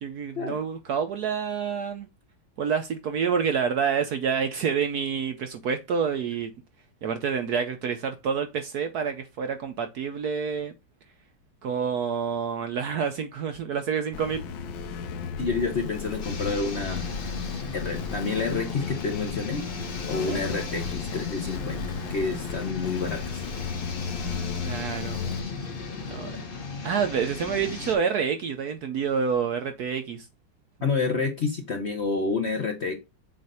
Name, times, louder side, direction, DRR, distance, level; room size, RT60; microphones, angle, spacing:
voice 1, 0.0-2.1 2.6-6.5 7.0-10.7 11.6-14.4 20.2-20.4 24.6-25.2 26.0-26.4 26.8-30.3, right 6 dB, 65° right, 0.9 m, -28 dB
sound 1, 14.1-25.4, left 5 dB, 75° left, 1.6 m, -35 dB
voice 2, 15.4-17.1 17.7-19.6 20.1-23.4 30.8-33.0, left 4 dB, 55° left, 0.7 m, -29 dB
sound 2, 16.2-27.9, left 4 dB, 35° left, 1.0 m, -36 dB
7.5 x 2.5 x 5.4 m
omnidirectional pair, 2.2 m